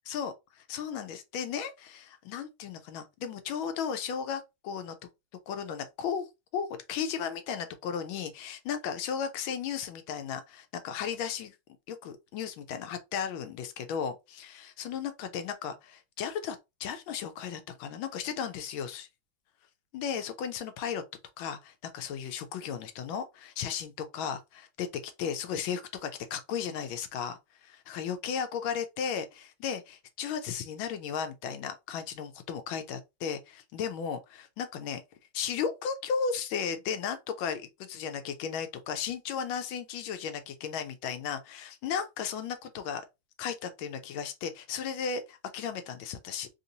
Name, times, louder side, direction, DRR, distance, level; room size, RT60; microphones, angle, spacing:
voice 1, 0.1-4.9 5.5-6.3 6.5-11.5 11.9-19.1 19.9-21.0 21.4-35.0 35.3-43.0 43.4-46.5, left 7 dB, 80° left, 1.3 m, -35 dB
3.5 x 2.6 x 2.7 m
omnidirectional pair, 2.2 m